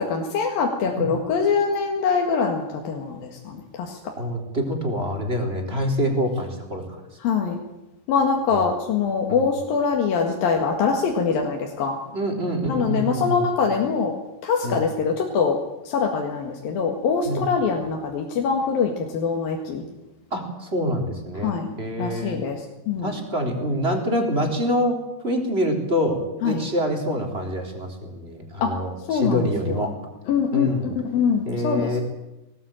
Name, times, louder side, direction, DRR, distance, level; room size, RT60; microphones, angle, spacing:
voice 1, 0.0-4.0 7.2-7.6 8.1-12.0 12.7-14.1 14.4-15.6 15.8-19.8 21.4-23.1 26.4-26.6 28.6-28.8 29.1-29.8 30.3-32.0, left 5 dB, 75° left, 1 dB, 3.7 m, -24 dB
voice 2, 4.2-7.0 9.3-9.5 12.1-13.5 14.6-14.8 17.3-17.5 20.3-22.4 23.0-25.0 25.2-29.9 30.5-30.9 31.5-32.0, equal, 15° right, 2 dB, 3.7 m, -26 dB
21.0 x 18.0 x 9.0 m, 0.97 s
omnidirectional pair, 4.1 m